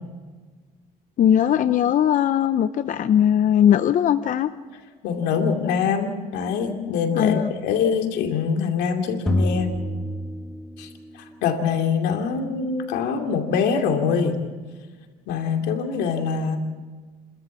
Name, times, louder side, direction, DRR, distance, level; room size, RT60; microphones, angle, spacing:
voice 1, 1.2-4.5 7.1-7.5, left 10 dB, 50° left, 12 dB, 0.6 m, -19 dB
voice 2, 5.0-9.7 10.8-10.9 11.1-14.4 15.3-16.6, left 6 dB, 90° left, 4 dB, 2.7 m, -24 dB
sound 1, 9.3-11.1, left 1 dB, 5° left, 1.6 m, -26 dB
30.0 x 13.5 x 7.4 m, 1.4 s
cardioid pair, 110°, 17 cm